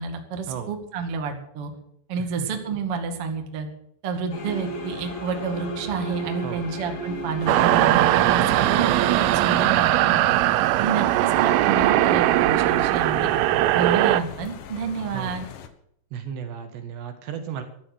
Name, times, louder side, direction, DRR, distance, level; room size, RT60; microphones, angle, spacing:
voice 1, 0.0-1.7 2.1-3.7 4.0-10.4 10.8-13.3 13.7-15.5, right 5 dB, 45° right, 4 dB, 2.1 m, -29 dB
sound 1, 4.3-9.7, right 2 dB, 45° left, 4.6 m, -33 dB
sound 2, 7.4-15.7, left 8 dB, 80° left, 1.8 m, -40 dB
sound 3, 7.5-14.2, right 15 dB, 90° right, 3.3 m, -20 dB
voice 2, 16.1-17.6, right 8 dB, 65° right, 7 dB, 3.4 m, -34 dB
14.5 x 12.0 x 6.3 m, 0.72 s
omnidirectional pair, 5.7 m